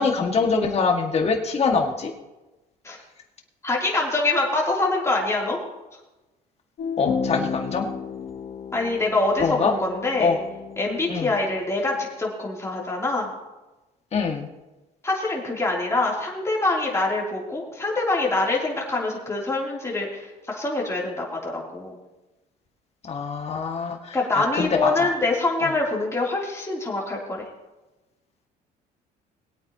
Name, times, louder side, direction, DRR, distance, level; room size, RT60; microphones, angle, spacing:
voice 1, 0.0-2.1 7.0-7.9 9.4-9.7 10.2-10.4 11.1-11.3 14.1-14.5 23.1-24.0 24.3-24.9, left 5 dB, 40° left, 3 dB, 2.0 m, -23 dB
voice 2, 3.6-5.6 8.7-10.3 10.8-13.3 15.0-22.0 24.1-27.4, left 2 dB, 15° left, -3 dB, 3.2 m, -25 dB
sound 1, 6.8-12.1, left 6 dB, 60° left, 1.5 m, -33 dB
21.0 x 8.8 x 3.0 m, 1.1 s
cardioid pair, 110°, 17 cm